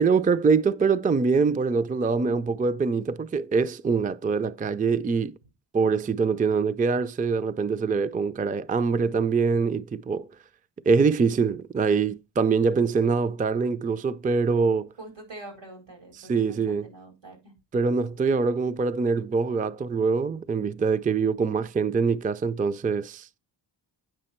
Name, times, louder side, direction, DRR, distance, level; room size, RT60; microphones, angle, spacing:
voice 1, 0.0-5.3 5.7-10.3 10.9-14.9 16.2-16.9 17.7-23.4, right 5 dB, 20° right, 0.4 m, -24 dB
voice 2, 15.0-17.5, right 2 dB, 85° right, 4.6 m, -45 dB
8.8 x 5.8 x 4.3 m
wide cardioid pair, 95°, 44 cm